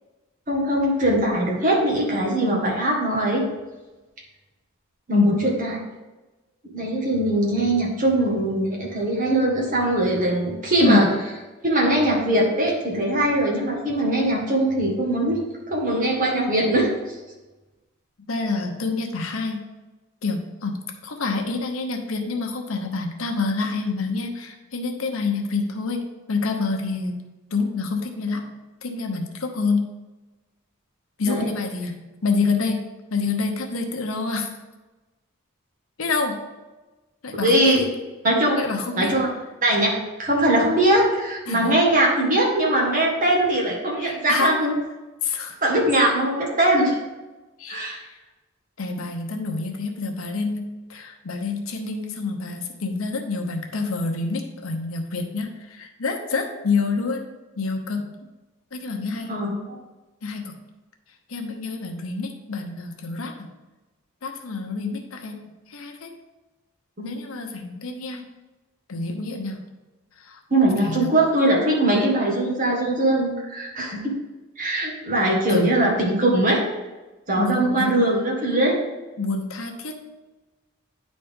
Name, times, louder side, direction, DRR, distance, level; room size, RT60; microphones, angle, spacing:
voice 1, 0.5-3.4 5.1-5.8 6.7-11.0 11.6-16.9 31.3-31.5 37.4-37.8 38.2-38.6 39.0-39.3 39.6-39.9 40.2-44.7 45.6-47.0 47.7-48.0 59.3-59.8 67.0-67.1 70.5-74.1 74.6-76.6 77.3-78.8, right 1 dB, 40° right, -2 dB, 1.6 m, -21 dB
voice 2, 10.8-11.1 18.3-19.6 20.2-20.7 21.0-27.2 27.5-28.5 28.8-29.9 31.2-32.8 33.1-34.5 36.0-36.4 37.2-37.9 38.5-39.1 41.5-41.7 44.0-44.6 45.2-45.6 47.6-48.2 48.8-57.2 57.6-58.1 58.7-59.3 60.2-60.5 61.3-63.5 64.2-65.4 65.7-66.1 67.0-68.2 68.9-69.7 70.2-70.4 70.8-71.1 75.5-75.8 77.4-78.0 79.2-80.0, left 4 dB, 75° left, 4 dB, 0.9 m, -27 dB
9.4 x 4.2 x 3.6 m, 1.1 s
head